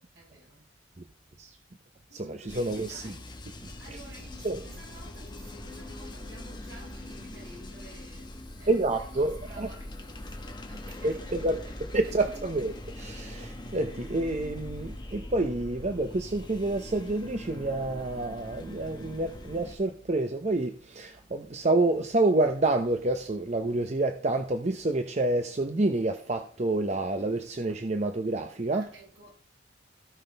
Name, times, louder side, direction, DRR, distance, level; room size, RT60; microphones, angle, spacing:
voice 1, 0.1-0.7 2.1-3.3 3.8-12.2 28.7-29.3, right 2 dB, 75° right, 6.1 m, -52 dB
voice 2, 2.1-3.1 4.4-4.6 8.7-9.7 11.0-11.6 11.9-28.9, right 2 dB, 35° right, 0.8 m, -28 dB
sound 1, 2.5-19.8, left 1 dB, 25° left, 1.4 m, -42 dB
17.0 x 6.0 x 3.4 m
head